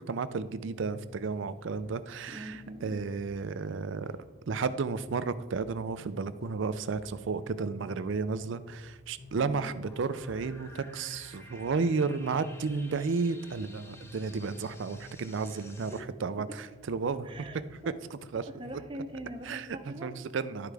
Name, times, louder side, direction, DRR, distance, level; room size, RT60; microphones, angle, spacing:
voice 1, 0.0-4.2 4.5-17.5 18.3-18.5 19.4-20.7, right 4 dB, 65° right, 13 dB, 0.4 m, -33 dB
sound 1, 0.8-19.6, equal, 50° left, 1.1 m, -53 dB
voice 2, 2.3-3.0 9.4-9.7 15.5-15.7 17.2-18.0 18.6-20.1, right 1 dB, 25° right, 5 dB, 0.7 m, -43 dB
sound 2, 9.8-16.0, left 2 dB, 10° left, 0.6 m, -53 dB
12.0 x 4.7 x 3.3 m, 1.3 s
head